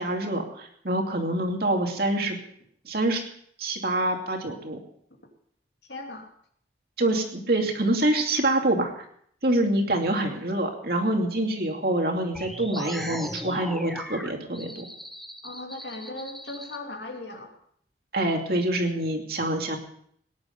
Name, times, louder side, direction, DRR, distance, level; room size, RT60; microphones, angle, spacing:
voice 1, 0.0-2.4 2.8-3.2 3.6-4.8 7.0-9.0 9.4-14.8 18.1-19.8, right 1 dB, 55° right, 2 dB, 2.6 m, -26 dB
voice 2, 5.9-6.3 15.4-17.5, left 2 dB, 70° left, 2 dB, 2.9 m, -38 dB
sound 1, 12.3-16.8, equal, ahead, 0.9 m, -38 dB
19.0 x 10.5 x 5.3 m, 0.65 s
head